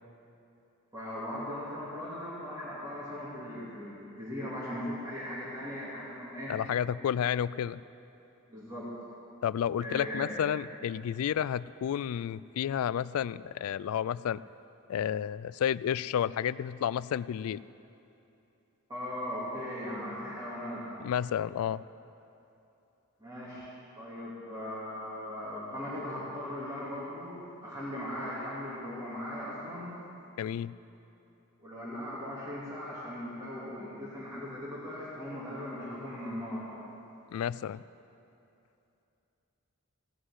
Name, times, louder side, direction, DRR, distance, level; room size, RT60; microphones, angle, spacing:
voice 1, 0.9-6.5 8.5-8.9 9.8-10.4 18.9-20.8 23.2-29.9 31.6-36.7, left 1 dB, 20° right, -10 dB, 2.6 m, -38 dB
voice 2, 6.5-7.8 9.4-14.4 14.9-17.6 21.0-21.8 30.4-30.7 37.3-37.8, left 9 dB, 75° left, 17 dB, 0.3 m, -31 dB
16.5 x 6.2 x 9.5 m, 2.8 s
head